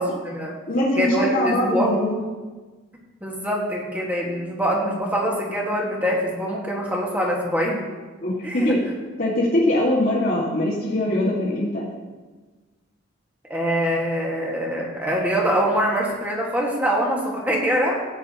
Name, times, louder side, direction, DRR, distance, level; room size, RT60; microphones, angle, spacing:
voice 1, 0.0-0.5 0.9-1.9 3.2-7.8 8.4-8.7 13.5-18.0, equal, 10° right, -2 dB, 1.6 m, -24 dB
voice 2, 0.7-2.2 8.2-8.8 9.2-11.8, left 1 dB, 50° left, -9 dB, 1.9 m, -22 dB
15.5 x 9.1 x 2.9 m, 1.3 s
head